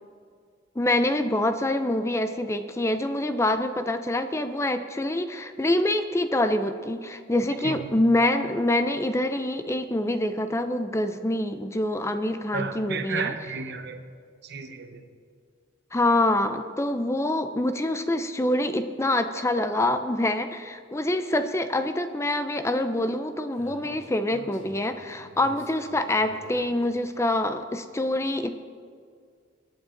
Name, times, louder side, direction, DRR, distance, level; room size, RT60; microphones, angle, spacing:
voice 1, 0.8-13.3 15.9-28.6, left 1 dB, 15° left, 0.5 m, -26 dB
voice 2, 12.5-14.0 14.4-15.0, right 5 dB, 60° right, 1.1 m, -32 dB
Speech, 23.6-27.0, equal, 85° left, 3.5 m, -46 dB
22.0 x 9.0 x 3.9 m
head